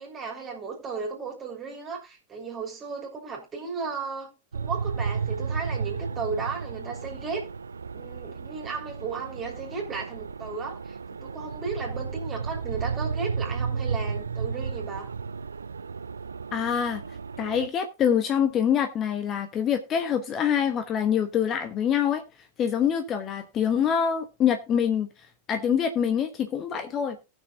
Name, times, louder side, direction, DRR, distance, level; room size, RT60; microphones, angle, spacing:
voice 1, 0.0-7.5 7.9-15.1, right 4 dB, 25° right, 3.4 m, -35 dB
sound 1, 4.5-17.7, right 5 dB, 75° right, 0.4 m, -33 dB
voice 2, 16.5-17.0 17.4-22.2 22.6-25.1 25.5-27.2, left 8 dB, 30° left, 1.1 m, -25 dB
19.0 x 6.4 x 2.8 m
figure-of-eight pair, 90°, 0 cm